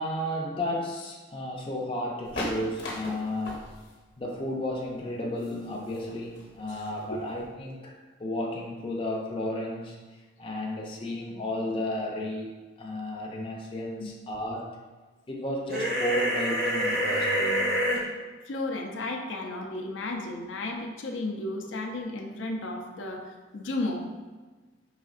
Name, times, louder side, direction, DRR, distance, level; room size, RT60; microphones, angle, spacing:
voice 1, 0.0-3.7 4.2-12.5 12.8-14.7 15.3-17.7, left 1 dB, 30° left, -1 dB, 0.4 m, -33 dB
sound 1, 2.2-7.5, left 1 dB, 65° left, 0.9 m, -39 dB
sound 2, 15.7-18.0, equal, 50° right, 0.8 m, -26 dB
voice 2, 18.5-24.1, left 2 dB, 85° left, 2 dB, 0.5 m, -33 dB
4.8 x 3.5 x 2.4 m, 1.3 s
head